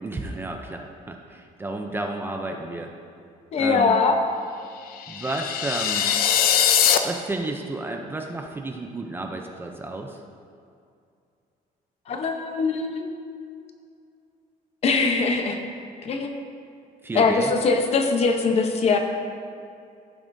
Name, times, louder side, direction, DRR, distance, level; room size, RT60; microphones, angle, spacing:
voice 1, 0.0-2.9 3.6-3.9 5.1-6.1 7.0-10.2 17.0-17.5, right 2 dB, 15° right, 3 dB, 0.5 m, -31 dB
voice 2, 3.5-4.2 12.1-13.1 14.8-15.6 16.0-16.4 17.1-19.0, left 4 dB, 45° left, 4 dB, 0.8 m, -22 dB
sound 1, 5.0-7.0, left 9 dB, 75° left, 0.6 m, -21 dB
16.0 x 7.1 x 2.6 m, 2.4 s
cardioid pair, 180°, 15 cm